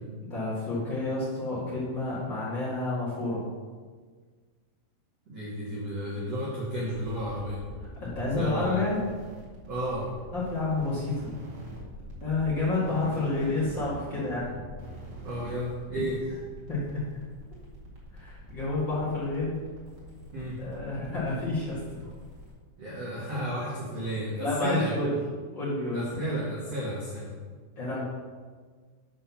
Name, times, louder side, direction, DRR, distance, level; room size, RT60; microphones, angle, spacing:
voice 1, 0.2-3.4 8.0-9.0 10.3-11.3 12.2-14.6 16.7-17.0 18.1-19.6 20.6-21.8 24.4-25.1 25.5-26.0 27.7-28.0, left 2 dB, 65° left, -9 dB, 1.1 m, -29 dB
voice 2, 5.3-7.6 8.3-8.9 9.7-10.1 15.2-16.2 20.3-20.6 22.8-25.1 25.9-27.3, right 1 dB, 85° right, -7 dB, 1.4 m, -32 dB
sound 1, 6.9-22.5, right 1 dB, 55° right, 1.4 m, -45 dB
8.5 x 6.0 x 5.8 m, 1.5 s
omnidirectional pair, 6.0 m